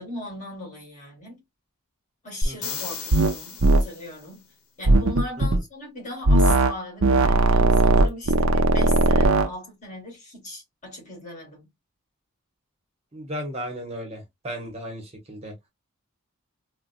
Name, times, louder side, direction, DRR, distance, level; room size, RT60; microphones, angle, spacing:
voice 1, 0.0-1.4 2.2-4.5 4.8-11.7, left 1 dB, 35° left, 2.1 m, -38 dB
sound 1, 2.4-4.3 8.1-8.2, left 2 dB, 70° left, 0.9 m, -32 dB
voice 2, 2.4-2.8 13.1-15.5, equal, 30° right, 0.9 m, -35 dB
sound 2, 3.1-3.3 3.6-3.8 4.9-5.6 6.3-6.7 7.0-9.5, right 2 dB, 65° right, 0.6 m, -18 dB
4.0 x 2.2 x 2.4 m
head